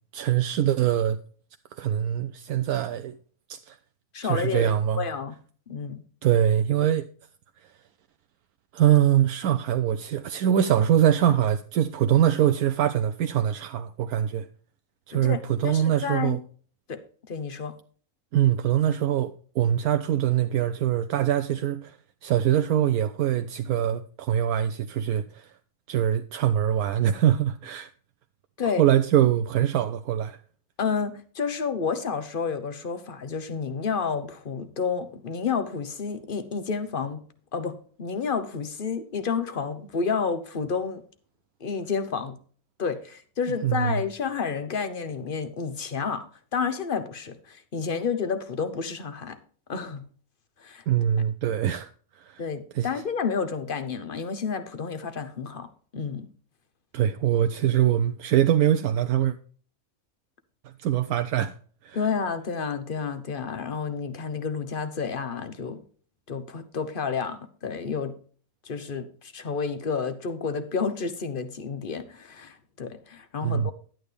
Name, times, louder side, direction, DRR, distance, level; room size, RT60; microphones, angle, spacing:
voice 1, 0.1-1.2 1.8-3.2 3.5-3.8 4.2-5.1 6.2-7.1 8.7-14.5 15.1-16.4 18.3-22.0 22.2-25.5 25.9-27.9 28.8-30.4 43.6-44.0 50.9-51.9 52.1-52.4 52.7-52.9 56.9-59.4 60.8-61.5 61.8-62.0 73.4-73.7, right 10 dB, 80° right, 1.1 m, -23 dB
voice 2, 4.1-5.3 5.7-6.0 15.1-16.4 16.9-17.0 17.3-17.7 28.6-28.8 30.8-37.2 37.5-41.0 41.6-42.4 42.8-46.3 46.5-49.4 49.7-50.1 50.6-50.8 52.4-55.7 55.9-56.3 61.9-65.8 66.3-68.2 68.6-73.7, left 5 dB, 40° left, 1.1 m, -30 dB
11.0 x 9.1 x 3.4 m
omnidirectional pair, 1.5 m